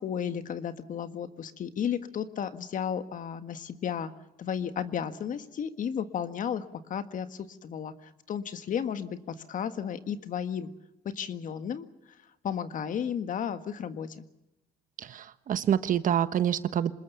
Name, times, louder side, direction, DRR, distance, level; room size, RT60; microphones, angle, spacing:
voice 1, 0.0-4.1 4.4-10.7 11.1-11.9 12.4-14.2, left 8 dB, 50° left, 10 dB, 1.7 m, -33 dB
voice 2, 15.0-16.9, right 9 dB, 50° right, 13 dB, 1.2 m, -27 dB
26.5 x 20.5 x 7.0 m, 0.92 s
cardioid pair, 110°, 17 cm